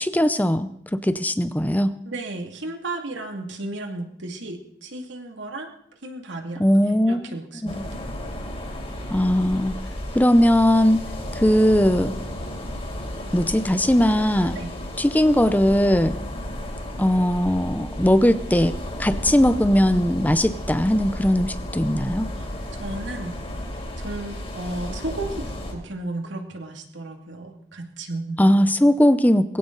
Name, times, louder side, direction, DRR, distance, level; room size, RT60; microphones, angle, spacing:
voice 1, 0.0-2.0 6.6-7.4 7.6-7.8 9.1-9.8 10.1-11.0 11.3-12.1 13.3-14.6 15.0-16.1 17.0-22.3 28.4-29.6, equal, 10° left, 12 dB, 0.6 m, -19 dB
voice 2, 2.1-5.7 6.0-6.7 7.1-7.8 14.5-14.7 22.3-22.5 22.7-23.3 24.0-28.5, right 2 dB, 80° right, 3 dB, 2.5 m, -34 dB
sound 1, 7.7-25.7, left 1 dB, 35° left, 3.9 m, -33 dB
21.0 x 16.0 x 4.0 m, 0.74 s
head